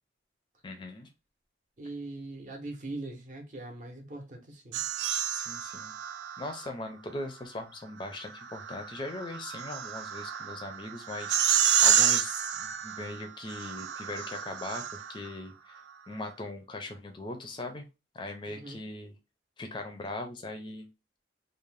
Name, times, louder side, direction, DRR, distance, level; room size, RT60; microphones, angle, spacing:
voice 1, 0.6-1.1 5.3-6.0 6.4-15.8 16.1-17.8 18.1-19.1 19.6-20.9, left 2 dB, 25° left, 0.4 m, -40 dB
voice 2, 1.8-4.8 18.5-18.8, right 2 dB, 45° right, 0.7 m, -41 dB
sound 1, 4.7-6.7 8.1-15.3, right 9 dB, 70° right, 0.3 m, -29 dB
2.6 x 2.0 x 3.1 m
head